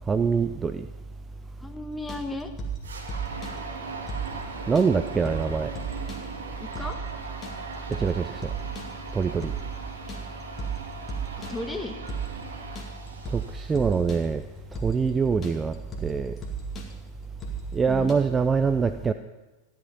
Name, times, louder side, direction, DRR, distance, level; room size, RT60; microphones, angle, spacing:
voice 1, 0.1-0.9 4.7-5.7 8.0-8.4 9.1-9.5 13.3-14.4 14.8-15.7 16.0-16.3 17.7-19.1, right 5 dB, 15° right, 10 dB, 0.5 m, -24 dB
voice 2, 1.6-2.5 6.6-7.0 11.5-12.0 17.9-18.1, left 2 dB, 10° left, 7 dB, 1.3 m, -34 dB
sound 1, 1.9-18.1, right 5 dB, 25° left, 2.3 m, -36 dB
sound 2, 2.8-14.2, right 4 dB, 70° right, 1.6 m, -39 dB
14.0 x 11.0 x 5.5 m, 1.1 s
figure-of-eight pair, 90°, 0 cm